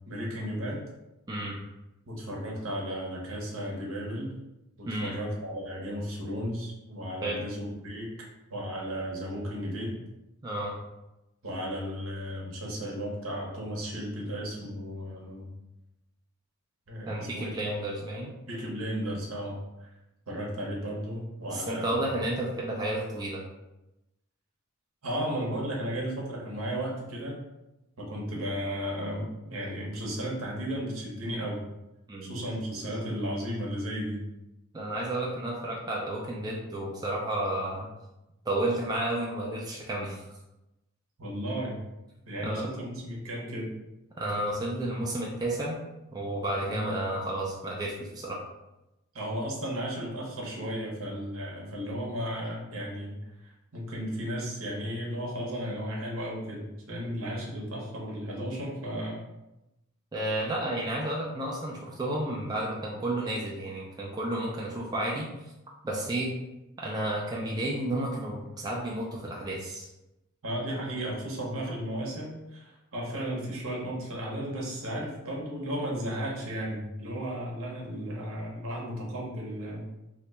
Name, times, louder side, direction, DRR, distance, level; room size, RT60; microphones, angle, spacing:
voice 1, 0.1-0.8 2.1-4.3 4.8-8.1 8.5-10.0 11.4-15.5 16.9-17.7 18.4-19.9 20.3-22.1 25.0-27.4 28.0-31.6 32.2-34.2 41.2-41.8 42.3-43.7 46.7-46.9 49.1-59.2 70.4-79.9, equal, 70° right, -3 dB, 0.9 m, -34 dB
voice 2, 4.9-5.2 7.2-7.5 10.4-10.7 13.9-14.0 14.6-14.7 17.1-18.3 21.5-23.4 32.1-32.4 32.9-33.0 34.7-37.9 38.5-40.2 42.4-42.7 44.2-45.8 46.1-48.4 60.1-65.3 65.8-66.3 66.8-69.9 74.8-74.9, right 1 dB, 15° right, -3 dB, 0.4 m, -32 dB
2.8 x 2.2 x 4.1 m, 0.95 s
head